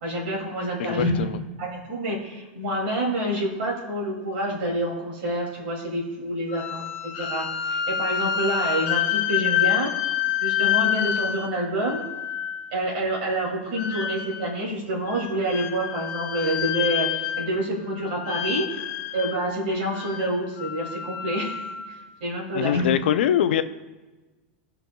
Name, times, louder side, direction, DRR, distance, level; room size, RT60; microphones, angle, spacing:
voice 1, 0.0-1.1 1.6-9.9 10.4-12.0 12.7-18.7 19.1-21.6 21.9-22.9, right 1 dB, 75° right, -3 dB, 2.6 m, -27 dB
voice 2, 0.8-1.4 22.5-23.6, left 10 dB, 80° left, 11 dB, 0.5 m, -23 dB
sound 1, 6.5-12.7 13.7-14.6 15.1-17.7 17.9-19.4 19.9-22.0, left 10 dB, 45° left, 0.8 m, -28 dB
14.0 x 5.8 x 2.3 m, 1.2 s
supercardioid pair, 135°, 6 cm